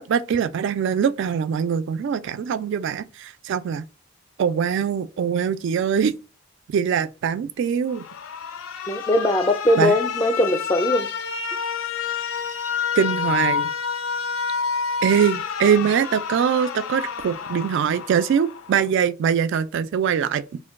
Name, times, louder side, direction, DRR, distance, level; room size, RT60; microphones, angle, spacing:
voice 1, 0.0-3.8 4.4-6.1 6.7-8.0 9.8-10.0 13.0-13.7 15.0-20.6, right 7 dB, 60° right, 0.3 m, -22 dB
Alarm, 7.9-18.9, left 6 dB, 75° left, 0.4 m, -29 dB
voice 2, 8.9-11.1, left 1 dB, 15° left, 0.4 m, -20 dB
2.5 x 2.2 x 3.5 m
head